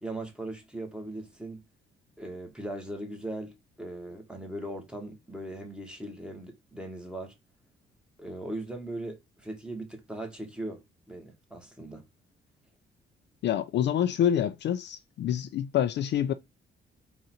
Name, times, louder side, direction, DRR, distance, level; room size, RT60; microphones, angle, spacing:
voice 1, 0.0-1.6 2.2-7.3 8.2-10.8 11.1-12.0, right 1 dB, 5° right, 1.3 m, -39 dB
voice 2, 13.4-16.3, left 10 dB, 60° left, 0.4 m, -27 dB
3.9 x 2.5 x 4.3 m
cardioid pair, 90°, 20 cm